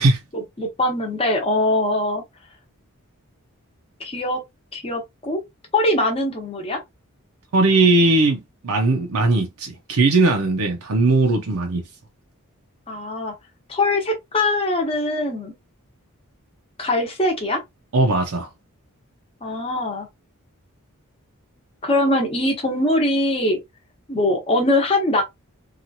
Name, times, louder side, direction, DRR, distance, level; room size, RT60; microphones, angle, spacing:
voice 1, 0.3-2.2 4.0-4.4 4.7-5.4 5.7-6.8 12.9-13.3 13.7-15.5 16.8-17.6 19.4-20.1 21.8-23.6 24.1-25.2, left 1 dB, 25° left, 0.9 m, -22 dB
voice 2, 7.5-11.8 17.9-18.5, right 2 dB, 70° right, 0.6 m, -18 dB
2.9 x 2.4 x 2.6 m
head